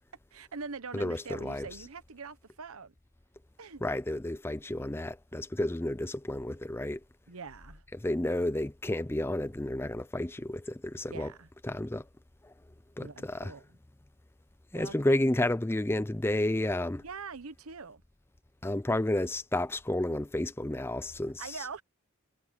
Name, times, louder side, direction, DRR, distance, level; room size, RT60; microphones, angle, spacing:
voice 1, 0.3-2.9 3.6-3.8 7.3-7.8 11.0-11.5 13.0-13.6 14.7-15.0 17.0-18.0 21.4-21.8, right 5 dB, 80° right, 1.0 m, -43 dB
voice 2, 0.9-1.7 3.8-7.0 7.9-11.3 11.6-12.1 12.4-12.5 13.0-13.5 14.7-17.0 18.6-21.6, left 1 dB, 10° left, 0.5 m, -31 dB
head